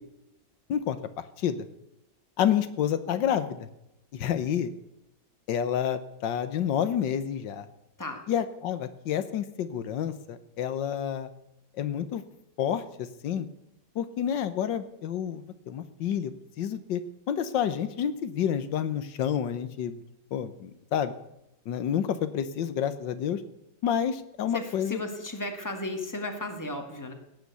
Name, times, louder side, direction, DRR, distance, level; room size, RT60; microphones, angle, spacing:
voice 1, 0.7-1.6 2.4-3.7 4.1-4.7 5.5-7.7 8.3-11.3 11.8-12.2 12.6-13.5 13.9-17.0 17.3-20.0 20.3-21.1 21.7-23.4 23.8-25.0, left 9 dB, 85° left, 12 dB, 1.7 m, -29 dB
voice 2, 24.5-27.1, left 1 dB, 10° left, 4 dB, 2.0 m, -35 dB
17.0 x 9.4 x 8.2 m, 0.87 s
omnidirectional pair, 1.9 m